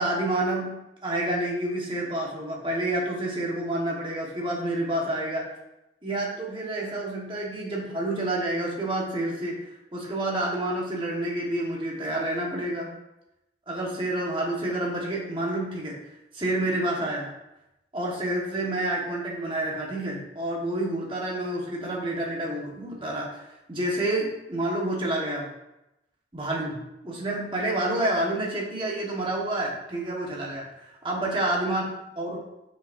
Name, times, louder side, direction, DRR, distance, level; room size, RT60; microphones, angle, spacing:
voice 1, 0.0-5.5 6.0-12.9 13.7-15.9 16.3-17.3 17.9-25.5 26.3-31.8 32.2-32.4, right 1 dB, 30° right, -3 dB, 1.5 m, -29 dB
7.0 x 6.0 x 2.7 m, 0.90 s
head